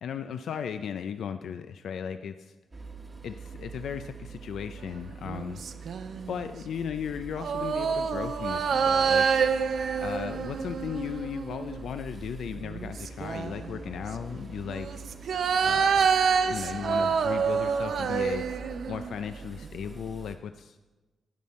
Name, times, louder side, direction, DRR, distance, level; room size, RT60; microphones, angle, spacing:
voice 1, 0.0-2.5 3.2-5.6 6.3-9.3 10.0-15.1 15.6-16.1 16.4-20.8, left 7 dB, 80° left, 9 dB, 0.4 m, -36 dB
sound 1, 2.7-20.4, right 3 dB, 25° right, 1.2 m, -44 dB
sound 2, 5.2-6.5 7.4-11.8 12.6-13.8 14.7-19.3 19.6-19.7, right 6 dB, 65° right, 0.6 m, -27 dB
12.5 x 9.4 x 4.2 m, 1.2 s
cardioid pair, 100°, 0 cm